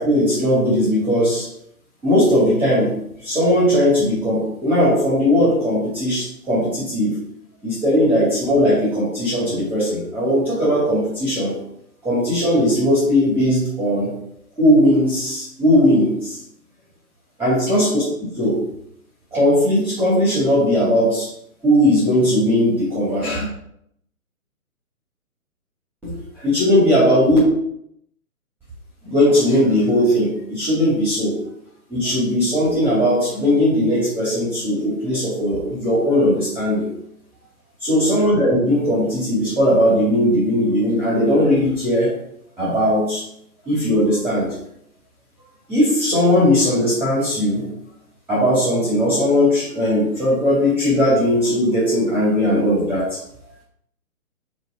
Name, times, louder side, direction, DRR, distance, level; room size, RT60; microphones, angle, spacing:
voice 1, 0.0-1.5 2.0-3.0 3.2-7.2 7.6-11.6 12.0-14.2 14.6-16.4 17.4-18.1 18.3-18.6 19.3-21.3 21.6-23.4 26.0-27.4 29.0-31.4 31.9-36.9 37.8-42.1 42.6-43.2 43.7-44.5 45.7-47.7 48.3-53.2, equal, 5° right, -7 dB, 2.1 m, -18 dB
6.2 x 4.7 x 6.2 m, 0.73 s
figure-of-eight pair, 145°, 45 cm